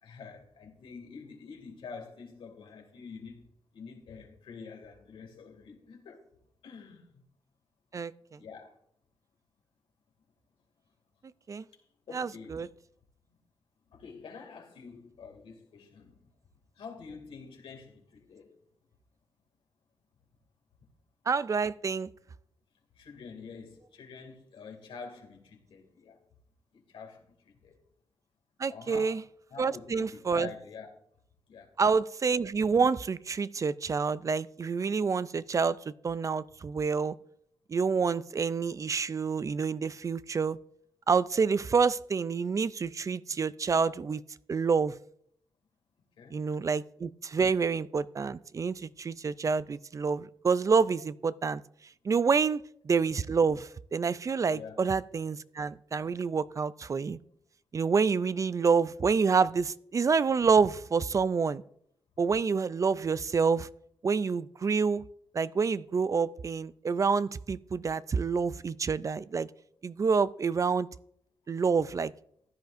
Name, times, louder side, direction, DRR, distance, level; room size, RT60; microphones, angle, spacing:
voice 1, 0.0-6.2 6.6-7.2 8.4-8.8 12.1-12.7 13.9-16.2 16.8-18.5 23.0-26.2 26.7-27.8 28.7-29.1 29.5-30.9 31.5-31.7 46.2-46.5 54.5-54.8, left 5 dB, 85° left, 2.4 m, -47 dB
voice 2, 12.1-12.7 21.3-22.1 28.6-29.2 29.6-30.5 31.8-37.2 37.7-40.6 41.1-44.2 44.5-44.9 46.3-51.6 52.0-57.2 57.7-61.6 62.2-63.7 64.0-65.1 65.3-69.5 69.8-70.9 71.5-72.1, right 5 dB, 35° right, 0.3 m, -28 dB
15.5 x 10.5 x 2.6 m
cardioid pair, 90°, 9 cm